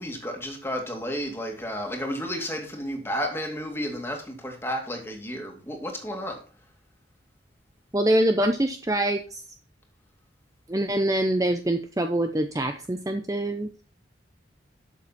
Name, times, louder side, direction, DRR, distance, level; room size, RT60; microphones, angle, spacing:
voice 1, 0.0-6.4, equal, 15° left, 2.4 m, -32 dB
voice 2, 7.9-9.4 10.7-13.7, right 1 dB, 20° right, 0.7 m, -24 dB
12.0 x 7.1 x 4.2 m
head